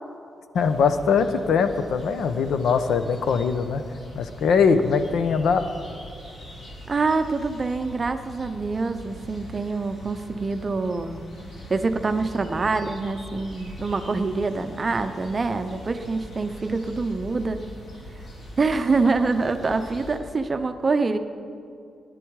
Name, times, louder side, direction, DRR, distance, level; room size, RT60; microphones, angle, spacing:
voice 1, 0.5-3.8 4.1-5.7, left 5 dB, 75° left, 10 dB, 0.8 m, -21 dB
sound 1, 0.5-20.2, equal, 45° left, 2.3 m, -42 dB
voice 2, 6.9-11.2 11.7-17.6 18.6-21.2, right 3 dB, 25° right, 9 dB, 0.6 m, -25 dB
18.5 x 11.0 x 4.7 m, 2.4 s
wide cardioid pair, 170°, 0 cm